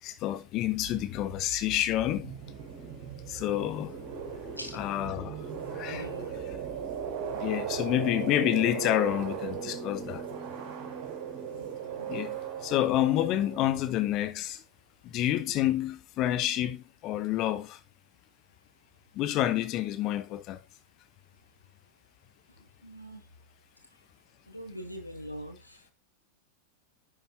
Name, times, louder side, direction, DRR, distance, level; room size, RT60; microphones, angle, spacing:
voice 1, 0.0-2.4 3.3-4.0 4.7-6.6 7.3-10.3 12.1-14.6 15.0-17.8 19.1-20.6, left 13 dB, 35° left, 0.9 m, -29 dB
sound 1, 0.6-14.0, right 7 dB, 55° right, 4.9 m, -38 dB
voice 2, 5.9-6.4 11.5-12.1 22.8-23.2 24.5-25.9, equal, 85° left, 2.3 m, -43 dB
11.0 x 8.6 x 2.8 m
figure-of-eight pair, 90°, 0 cm